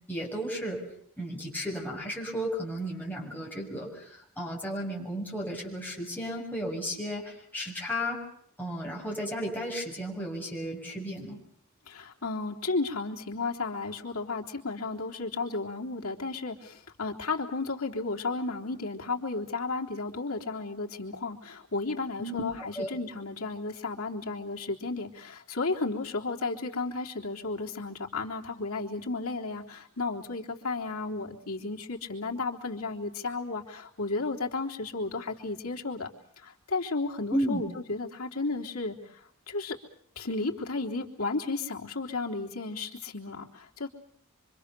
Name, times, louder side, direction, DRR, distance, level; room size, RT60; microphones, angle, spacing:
voice 1, 0.1-0.8 1.2-8.2 8.6-11.4 22.2-22.9 37.3-37.6, equal, 10° left, -2 dB, 6.8 m, -34 dB
voice 2, 11.9-36.1 36.4-39.2 39.5-39.8 40.2-43.9, left 3 dB, 90° left, 1 dB, 3.5 m, -33 dB
25.5 x 25.5 x 6.9 m, 0.66 s
head